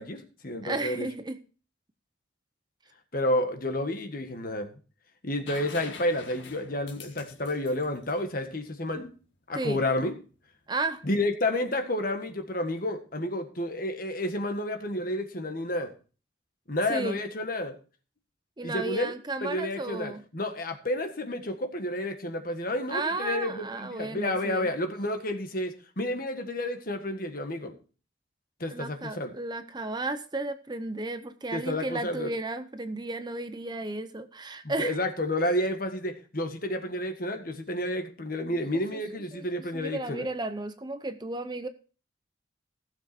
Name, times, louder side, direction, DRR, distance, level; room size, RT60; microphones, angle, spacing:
voice 1, 0.0-1.1 3.1-4.7 5.2-9.1 9.5-10.1 11.0-15.9 16.7-17.7 18.6-19.1 19.4-27.7 28.6-29.3 31.5-32.3 34.6-40.3, left 1 dB, 50° left, 6 dB, 1.7 m, -30 dB
voice 2, 0.6-1.4 9.6-9.8 10.7-11.0 16.9-17.2 18.6-20.2 22.9-24.7 28.7-34.9 38.5-38.6 38.9-39.0 39.3-39.4 39.7-41.7, right 2 dB, 20° right, 10 dB, 0.7 m, -33 dB
sound 1, 5.5-9.2 11.0-11.1, left 5 dB, 70° left, 1.7 m, -46 dB
15.5 x 7.1 x 4.4 m, 0.37 s
head